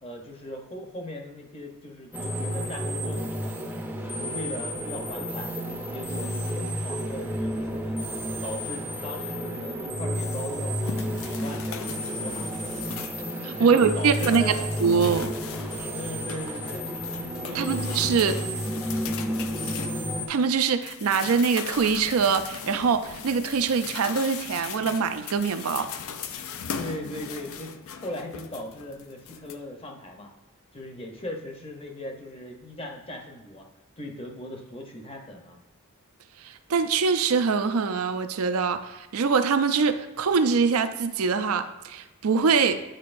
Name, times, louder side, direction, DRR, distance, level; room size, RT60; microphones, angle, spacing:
voice 1, 0.0-3.5 4.0-5.5 5.9-8.1 8.4-11.7 12.1-12.7 13.6-14.7 15.9-16.9 17.5-17.8 18.2-18.4 26.8-27.7 28.0-30.3 30.7-33.6 34.0-35.6, left 1 dB, 25° left, 2 dB, 0.7 m, -39 dB
sound 1, 2.1-20.3, equal, 10° right, 0.5 m, -31 dB
sound 2, 10.3-13.3 13.7-20.5 20.8-29.6, left 7 dB, 70° left, 0.4 m, -39 dB
voice 2, 13.4-15.3 15.8-15.9 17.5-18.4 20.3-25.9 36.4-42.8, right 5 dB, 80° right, 9 dB, 0.5 m, -24 dB
8.9 x 4.6 x 2.5 m, 1.1 s
head